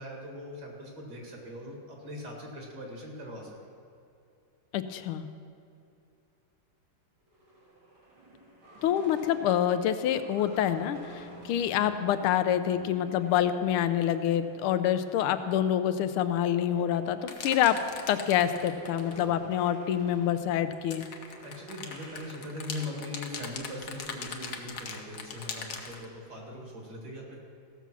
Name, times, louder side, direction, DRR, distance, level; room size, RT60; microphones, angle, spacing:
voice 1, 0.0-3.6 21.4-27.4, left 1 dB, 50° right, -1 dB, 2.5 m, -40 dB
voice 2, 4.7-5.3 8.8-17.8 18.1-21.1, left 10 dB, 85° left, 10 dB, 1.5 m, -27 dB
sound 1, 7.3-15.7 16.0-22.9, right 2 dB, 80° right, 3.4 m, -49 dB
sound 2, 17.3-19.3 20.7-26.0, left 6 dB, 55° left, 1.3 m, -40 dB
15.0 x 7.0 x 6.0 m, 2.5 s
omnidirectional pair, 2.4 m